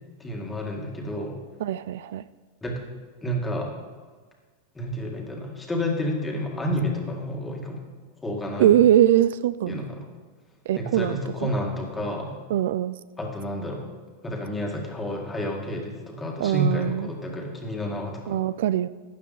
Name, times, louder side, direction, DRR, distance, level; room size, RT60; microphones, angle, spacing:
voice 1, 0.2-1.4 2.6-2.8 3.2-3.7 4.8-7.8 8.2-8.8 9.7-10.0 10.8-12.4 13.2-13.9 14.2-18.4, equal, 10° left, 0 dB, 1.8 m, -30 dB
voice 2, 1.6-2.2 8.6-9.8 10.7-11.5 12.5-12.9 16.4-17.1 18.3-18.9, right 11 dB, 75° right, 16 dB, 0.3 m, -22 dB
12.5 x 9.3 x 4.0 m, 1.5 s
supercardioid pair, 145°, 0 cm